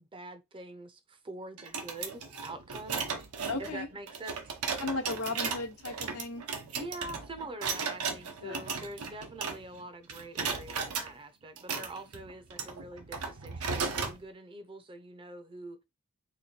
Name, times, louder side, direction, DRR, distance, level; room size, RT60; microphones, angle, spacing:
voice 1, 0.0-3.1 3.6-4.5 6.7-15.8, right 2 dB, 25° right, 0.5 m, -45 dB
sound 1, 1.6-9.8 10.1-11.1 11.6-14.2, right 5 dB, 85° right, 0.9 m, -36 dB
voice 2, 3.5-3.9 4.8-6.5 8.4-8.7, left 3 dB, 85° left, 1.0 m, -36 dB
3.1 x 2.9 x 4.3 m
head